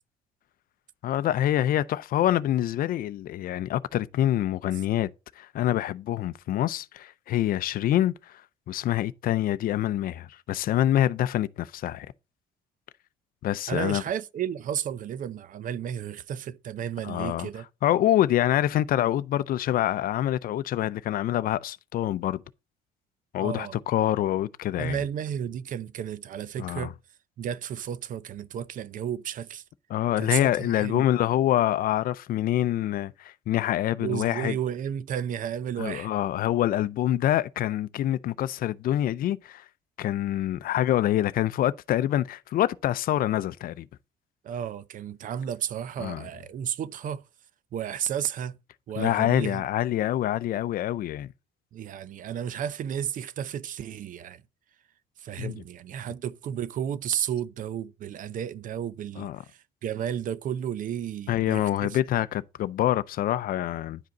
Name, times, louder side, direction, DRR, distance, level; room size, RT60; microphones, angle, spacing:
voice 1, 1.0-5.1 5.4-8.1 8.7-12.1 13.4-14.0 17.0-17.5 17.8-22.4 23.3-25.0 26.6-26.9 29.9-34.6 35.8-39.6 40.0-43.9 46.0-46.3 49.0-51.3 55.4-55.6 59.2-59.4 61.3-64.0, left 12 dB, 60° left, 0.5 m, -26 dB
voice 2, 13.7-17.7 23.4-23.8 24.8-27.0 27.4-29.6 30.2-31.1 34.0-36.1 44.4-47.2 47.7-48.6 48.9-49.6 51.7-54.4 55.2-62.0, right 9 dB, 50° right, 0.6 m, -33 dB
10.5 x 5.1 x 3.9 m
cardioid pair, 110°, 17 cm